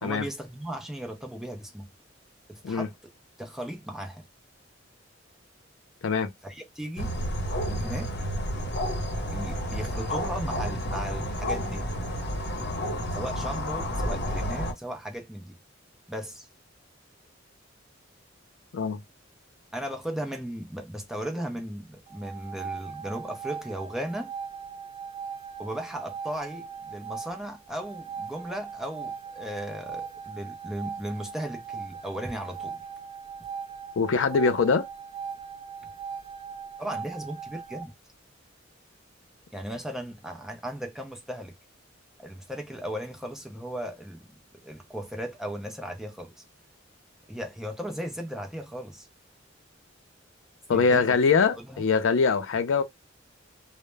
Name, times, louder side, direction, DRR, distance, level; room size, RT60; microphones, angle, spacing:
voice 1, 0.0-1.9 2.5-2.9 3.4-4.2 6.4-7.2 7.7-8.2 9.3-11.9 13.1-15.6 16.1-16.5 19.7-24.3 25.6-32.8 36.8-37.9 39.5-41.5 42.2-44.2 44.6-46.4 47.3-49.1 50.7-51.1 51.6-51.8, equal, ahead, 0.5 m, -36 dB
sound 1, 7.0-14.7, equal, 55° left, 0.8 m, -30 dB
sound 2, 22.1-37.9, right 6 dB, 30° right, 0.8 m, -39 dB
voice 2, 34.0-34.9 50.7-52.8, left 5 dB, 80° left, 0.4 m, -23 dB
2.1 x 2.0 x 3.2 m
head